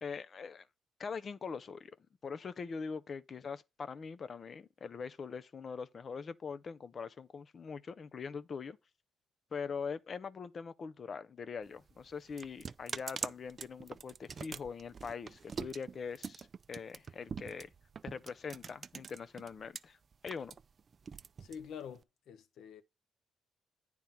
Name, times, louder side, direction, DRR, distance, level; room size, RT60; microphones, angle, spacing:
voice 1, 0.0-0.7 1.0-1.9 2.2-8.8 9.5-17.7 18.0-20.0 20.2-20.6, left 5 dB, 45° left, 0.6 m, -42 dB
sound 1, 11.6-19.8 20.1-22.0, right 6 dB, 45° right, 0.3 m, -44 dB
voice 2, 21.4-22.8, left 7 dB, 75° left, 0.9 m, -47 dB
9.2 x 3.6 x 5.8 m
cardioid pair, 90°, 0 cm